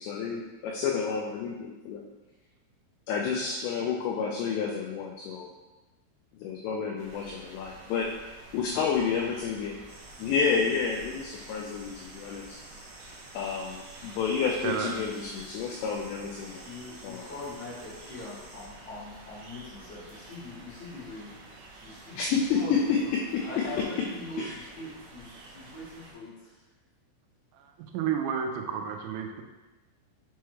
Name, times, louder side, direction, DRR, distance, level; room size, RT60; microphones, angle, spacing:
voice 1, 0.0-2.0 3.1-5.5 6.4-8.1 8.5-9.8 10.2-12.6 13.3-16.6 17.0-17.3 22.1-23.5 24.4-24.5, left 6 dB, 85° left, 0 dB, 2.5 m, -30 dB
sound 1, 7.0-26.1, right 2 dB, 70° right, 2.6 m, -50 dB
sound 2, 9.9-18.7, right 1 dB, 50° right, 2.2 m, -51 dB
voice 2, 16.6-21.4 21.8-26.6, left 2 dB, 60° left, -9 dB, 1.8 m, -42 dB
voice 3, 27.5-29.4, right 7 dB, 90° right, 3 dB, 3.3 m, -31 dB
7.2 x 4.7 x 3.2 m, 1.1 s
omnidirectional pair, 5.7 m